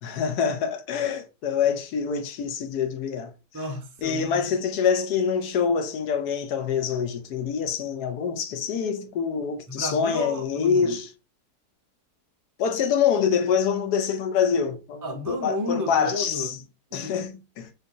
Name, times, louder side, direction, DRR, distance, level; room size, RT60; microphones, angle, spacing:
voice 1, 0.0-3.3 4.0-11.0 12.6-16.5 16.9-17.7, left 7 dB, 75° left, 1.2 m, -25 dB
voice 2, 3.5-4.4 9.7-10.9 15.0-17.3, left 1 dB, 20° right, 0.5 m, -33 dB
5.1 x 2.7 x 2.8 m
omnidirectional pair, 1.8 m